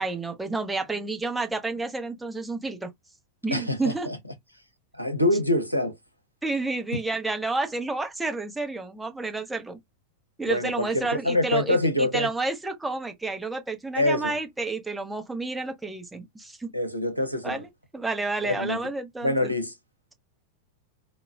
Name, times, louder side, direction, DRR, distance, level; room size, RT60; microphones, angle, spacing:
voice 1, 0.0-2.9 3.4-4.1 6.4-9.8 10.4-16.7 17.4-17.7 17.9-19.5, right 3 dB, 5° right, 0.8 m, -30 dB
voice 2, 3.5-4.2 5.0-6.0 10.4-12.3 14.0-14.4 16.7-17.6 18.4-18.8 19.2-19.7, left 1 dB, 90° right, 0.7 m, -25 dB
3.8 x 2.1 x 2.3 m
figure-of-eight pair, 90°, 0 cm